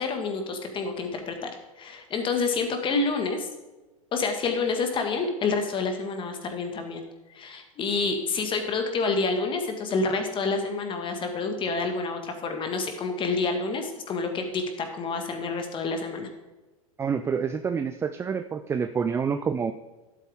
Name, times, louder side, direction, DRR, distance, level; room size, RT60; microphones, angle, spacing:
voice 1, 0.0-1.5 1.8-3.5 4.1-7.0 7.3-16.3, left 4 dB, 25° left, 5 dB, 1.8 m, -28 dB
voice 2, 17.0-19.7, right 6 dB, 15° right, 9 dB, 0.4 m, -27 dB
12.0 x 8.2 x 3.6 m, 1.1 s
hypercardioid pair, 100°, 18 cm